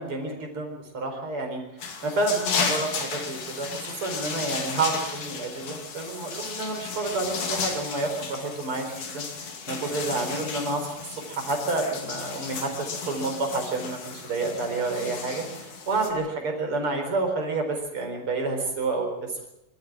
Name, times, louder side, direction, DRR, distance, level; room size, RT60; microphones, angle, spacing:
voice 1, 0.0-9.2 9.7-19.5, right 3 dB, 45° right, 3 dB, 5.1 m, -29 dB
sound 1, 1.8-16.1, left 5 dB, 85° left, 4.1 m, -34 dB
24.5 x 13.5 x 8.8 m, 0.88 s
omnidirectional pair, 3.5 m